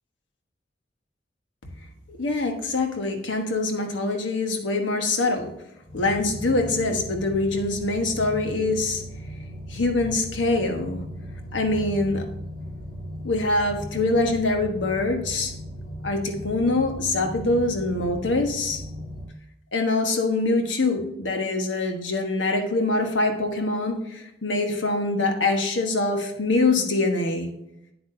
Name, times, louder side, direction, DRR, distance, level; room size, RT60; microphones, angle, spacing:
voice 1, 2.1-5.5 5.9-9.0 9.7-11.0 11.5-12.3 13.2-15.6 16.0-18.8 19.7-27.5, left 2 dB, 85° left, 4 dB, 1.3 m, -24 dB
sound 1, 5.8-19.2, equal, 45° left, 1.9 m, -37 dB
9.3 x 8.0 x 2.7 m, 0.82 s
head